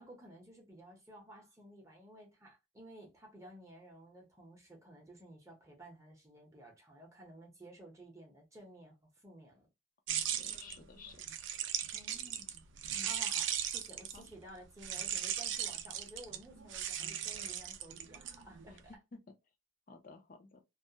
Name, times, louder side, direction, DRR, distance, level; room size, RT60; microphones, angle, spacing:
voice 1, 0.0-9.7 11.9-12.7 13.0-18.9, right 1 dB, 15° right, 0.7 m, -54 dB
sound 1, 10.1-14.3 14.8-18.8, right 10 dB, 65° right, 0.4 m, -38 dB
voice 2, 10.3-11.2 12.9-13.1 14.1-14.3 19.1-19.2 19.9-20.6, left 4 dB, 40° left, 0.5 m, -53 dB
2.3 x 2.1 x 2.7 m
head